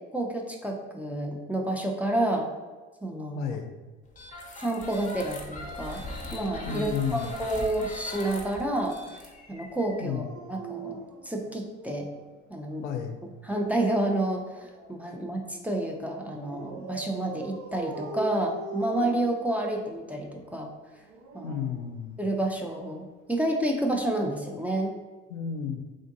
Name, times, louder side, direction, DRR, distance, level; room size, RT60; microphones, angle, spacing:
voice 1, 0.1-2.5 3.0-3.6 4.6-6.0 6.3-10.2 10.5-11.0 11.2-12.1 12.5-12.8 13.4-20.7 21.3-21.6 22.2-25.0, right 1 dB, 5° right, 1 dB, 0.7 m, -29 dB
voice 2, 3.4-3.7 6.6-7.3 10.0-10.3 12.8-13.2 21.4-22.1 25.3-25.8, left 7 dB, 90° left, 5 dB, 0.5 m, -32 dB
sound 1, 4.1-10.0, left 2 dB, 20° left, 0.9 m, -41 dB
Dog, 5.6-7.5 9.9-12.3 13.6-15.3 16.4-20.0 20.9-22.6 23.9-24.1, right 4 dB, 55° right, 0.7 m, -42 dB
3.7 x 2.5 x 3.7 m, 1.3 s
hypercardioid pair, 60°, 35 cm